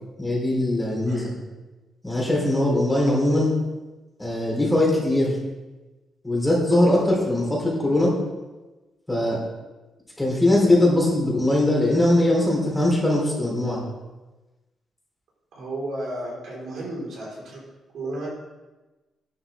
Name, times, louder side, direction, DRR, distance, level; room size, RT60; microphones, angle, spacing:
voice 1, 0.2-1.3 2.0-3.5 4.2-5.4 6.2-8.1 9.1-9.4 10.2-13.8, left 1 dB, 10° left, -4 dB, 4.1 m, -21 dB
voice 2, 15.5-17.6 17.9-18.3, right 1 dB, 65° right, -4 dB, 4.9 m, -33 dB
14.0 x 11.5 x 3.7 m, 1.1 s
cardioid pair, 145°, 0 cm